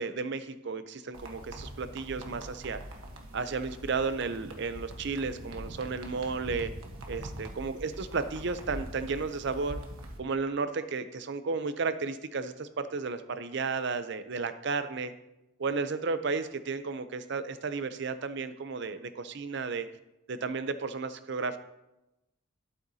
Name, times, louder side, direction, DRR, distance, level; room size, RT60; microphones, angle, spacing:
voice 1, 0.0-2.8 3.3-6.7 7.1-9.8 10.2-15.1 15.6-19.9 20.3-21.6, right 4 dB, 55° right, 11 dB, 0.5 m, -33 dB
sound 1, 1.1-10.2, right 1 dB, 85° right, 1.2 m, -43 dB
11.5 x 7.8 x 2.8 m, 0.93 s
head